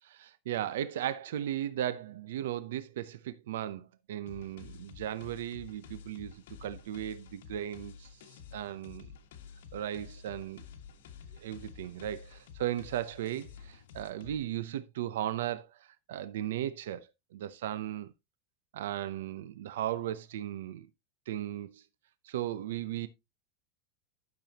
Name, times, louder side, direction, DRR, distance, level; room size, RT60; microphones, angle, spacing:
voice 1, 0.0-9.1 9.7-10.6 11.3-18.1 18.7-20.9 21.3-21.8 22.2-23.1, right 11 dB, 85° right, 0.7 m, -36 dB
sound 1, 4.3-14.4, left 7 dB, 80° left, 1.7 m, -50 dB
12.0 x 6.9 x 2.9 m
supercardioid pair, 160°, 0 cm